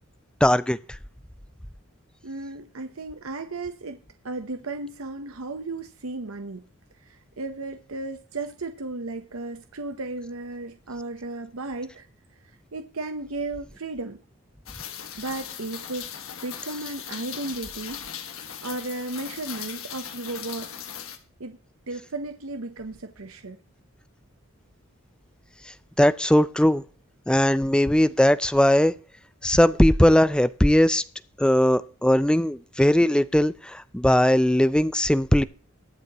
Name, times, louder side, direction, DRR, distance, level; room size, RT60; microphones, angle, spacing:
voice 1, 0.4-0.8 26.0-26.8 27.3-28.9 29.4-31.0 31.4-35.4, left 1 dB, 5° left, 0.4 m, -19 dB
voice 2, 2.2-6.6 7.0-12.0 12.7-14.2 15.2-16.1 16.4-18.3 18.6-20.7 21.4-21.6 21.9-23.6, right 2 dB, 80° right, 1.0 m, -34 dB
Rain, 14.7-21.2, left 9 dB, 80° left, 1.8 m, -38 dB
21.5 x 7.6 x 3.0 m
head